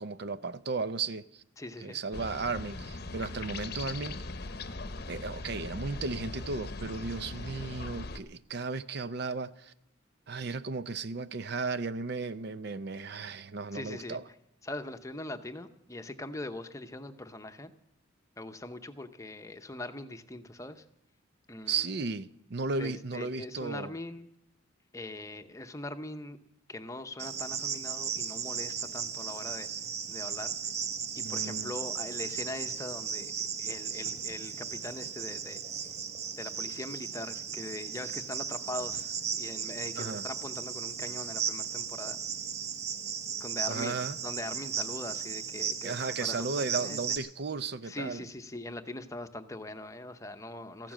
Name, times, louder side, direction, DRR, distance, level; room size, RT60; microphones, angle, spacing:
voice 1, 0.0-1.4 1.8-4.2 5.1-9.7 10.3-14.2 21.7-23.9 31.2-31.7 40.0-40.2 43.7-44.2 45.8-48.2, right 4 dB, 55° right, 0.5 m, -35 dB
voice 2, 1.6-2.0 13.7-14.2 14.6-17.7 18.4-20.8 21.5-21.9 22.8-24.3 24.9-26.4 26.7-29.7 30.1-30.6 31.1-33.3 33.6-35.6 36.4-42.2 43.4-47.0 47.8-50.9, left 2 dB, 15° left, 0.8 m, -41 dB
sound 1, 2.1-8.2, left 3 dB, 50° left, 0.8 m, -40 dB
Cricket, 27.2-47.2, right 7 dB, 35° right, 1.0 m, -36 dB
14.5 x 12.0 x 7.5 m
head